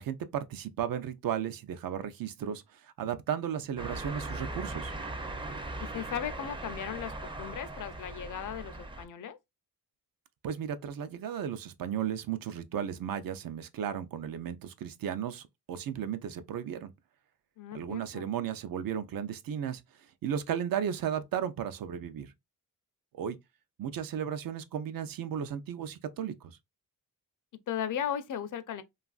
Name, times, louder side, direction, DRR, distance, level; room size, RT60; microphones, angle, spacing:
voice 1, 0.0-4.9 10.4-16.9 17.7-19.8 20.2-22.3 23.1-23.4 23.8-26.6, right 9 dB, 70° right, 0.5 m, -35 dB
sound 1, 3.8-9.1, right 2 dB, 15° right, 0.4 m, -39 dB
voice 2, 5.8-9.4 17.6-18.3 27.7-28.8, left 9 dB, 60° left, 0.5 m, -36 dB
2.9 x 2.4 x 2.3 m
wide cardioid pair, 130°, 36 cm